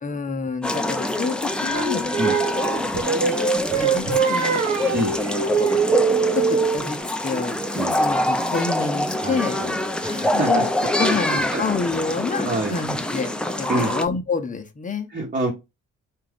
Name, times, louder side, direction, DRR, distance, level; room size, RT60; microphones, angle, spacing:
voice 1, 0.0-2.0 2.8-3.1 3.7-4.6 5.4-5.8 6.3-9.6 10.3-10.7 11.0-15.1, left 4 dB, 25° left, 0.8 m, -28 dB
sound 1, 0.6-14.1, left 1 dB, 5° left, 0.5 m, -25 dB
Singing, 1.7-6.9, right 5 dB, 65° right, 0.9 m, -22 dB
voice 2, 9.2-9.8 10.0-10.7 11.0-11.6 12.4-12.7 13.7-13.9 15.1-15.5, right 2 dB, 30° right, 1.1 m, -26 dB
3.5 x 2.5 x 3.5 m
cardioid pair, 90°, 30 cm